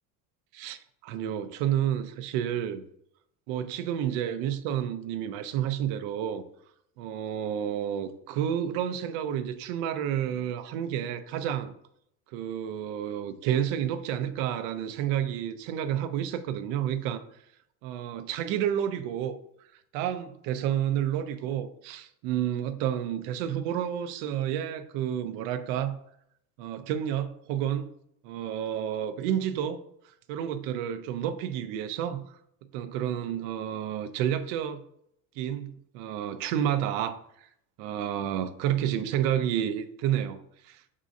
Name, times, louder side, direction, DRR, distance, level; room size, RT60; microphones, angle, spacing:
voice 1, 0.5-2.8 3.5-6.4 7.0-11.7 12.3-17.2 17.8-19.4 19.9-26.0 26.6-27.9 28.2-29.8 30.3-32.4 32.7-34.8 35.4-37.5 37.8-41.0, right 10 dB, 75° right, 0.6 m, -30 dB
5.1 x 3.7 x 2.7 m
cardioid pair, 165°, 38 cm